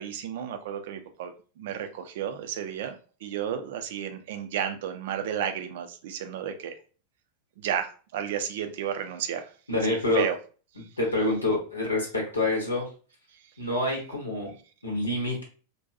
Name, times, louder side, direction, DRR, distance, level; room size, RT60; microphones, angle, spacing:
voice 1, 0.0-1.3 1.6-2.9 3.2-6.7 7.6-9.5 9.9-10.4 10.8-10.9 13.3-13.4, right 9 dB, 55° right, 7 dB, 0.4 m, -32 dB
voice 2, 9.7-10.3 11.0-12.9 13.6-14.5 14.8-15.4, left 2 dB, 80° left, -1 dB, 0.8 m, -27 dB
2.6 x 2.2 x 2.4 m, 0.38 s
figure-of-eight pair, 90°, 0 cm